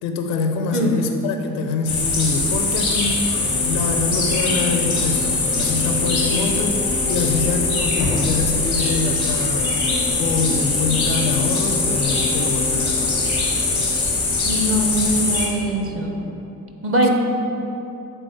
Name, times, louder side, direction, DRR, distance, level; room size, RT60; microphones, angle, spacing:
voice 1, 0.0-3.2 3.6-9.7 10.1-13.1, left 4 dB, 65° left, 5 dB, 0.6 m, -25 dB
sound 1, 1.9-15.5, left 3 dB, 90° left, 1.0 m, -22 dB
sound 2, 3.2-16.5, left 4 dB, 15° left, 0.5 m, -32 dB
voice 2, 14.4-16.2 16.8-17.1, right 1 dB, 30° right, 3 dB, 0.8 m, -21 dB
7.7 x 3.8 x 3.2 m, 2.9 s
figure-of-eight pair, 40°, 42 cm